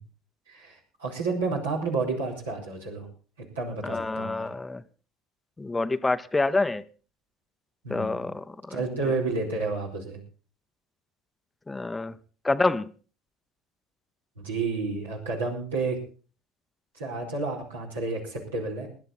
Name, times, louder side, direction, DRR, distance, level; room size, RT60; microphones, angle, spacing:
voice 1, 0.5-3.1 3.5-4.4 7.8-8.2 8.7-10.2 14.4-16.0 16.9-18.9, right 3 dB, 85° right, 4.4 m, -30 dB
voice 2, 3.8-4.8 5.6-6.8 7.9-8.8 11.7-12.1 12.4-12.9, left 3 dB, 15° left, 0.7 m, -27 dB
20.0 x 10.5 x 4.2 m
hypercardioid pair, 65°, 0 cm